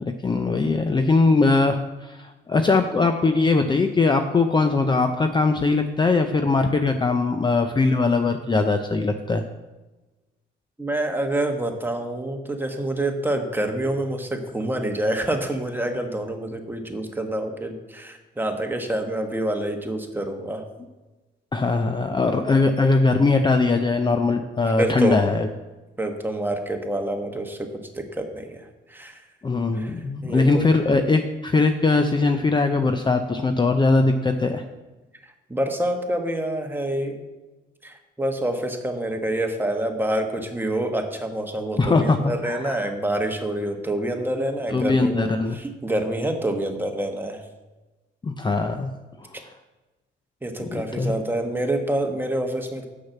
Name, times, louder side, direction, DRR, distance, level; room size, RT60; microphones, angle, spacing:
voice 1, 0.0-9.4 21.5-25.5 29.4-34.6 41.8-42.9 44.7-45.6 48.2-48.9 49.2-49.5 50.6-51.1, left 3 dB, 25° left, 6 dB, 0.5 m, -21 dB
voice 2, 10.8-20.6 24.8-25.2 26.0-27.7 27.9-28.6 28.9-29.2 29.7-29.9 30.2-30.7 35.5-37.2 37.8-45.3 45.5-47.4 50.4-52.9, right 1 dB, 10° right, 4 dB, 1.2 m, -27 dB
6.3 x 5.8 x 7.2 m, 1.2 s
cardioid pair, 90°, 20 cm